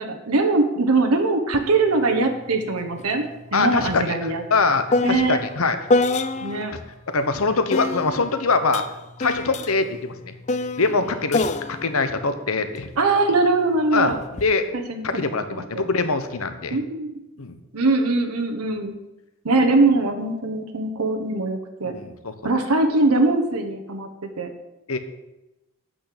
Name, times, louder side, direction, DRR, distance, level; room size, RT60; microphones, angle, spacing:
voice 1, 0.0-3.2 3.5-4.4 5.0-5.4 6.4-6.7 13.0-14.2 14.7-15.0 15.5-15.6 16.7-17.2 17.7-19.0 19.4-21.9 22.4-24.1 24.4-24.5, right 3 dB, 90° right, 5 dB, 1.2 m, -21 dB
sound 1, 1.5-1.7 2.0-6.8 7.7-13.2 14.1-14.5, left 2 dB, 30° left, 0.4 m, -27 dB
voice 2, 3.5-5.8 6.4-6.5 7.1-8.8 9.2-10.1 10.8-12.9 13.9-14.1 14.4-14.7 15.0-16.8 17.4-17.6 21.8-22.3 24.9-25.0, left 4 dB, 75° left, 9 dB, 1.1 m, -23 dB
8.7 x 6.5 x 8.5 m, 0.98 s
head